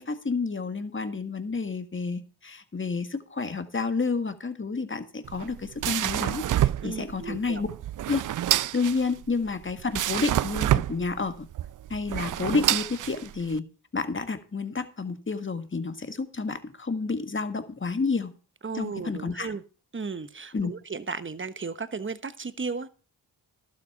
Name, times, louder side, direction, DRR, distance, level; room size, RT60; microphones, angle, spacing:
voice 1, 0.0-7.7 8.1-8.2 8.7-11.5 11.9-13.7 13.9-18.3 18.7-19.5 20.5-20.7, left 4 dB, 30° left, 9 dB, 1.7 m, -30 dB
sound 1, 5.2-13.6, right 12 dB, 50° right, 0.5 m, -28 dB
voice 2, 6.8-7.6 18.6-19.6 19.9-22.9, right 4 dB, 30° right, 13 dB, 1.1 m, -35 dB
11.5 x 7.7 x 5.9 m, 0.37 s
supercardioid pair, 45°, 43 cm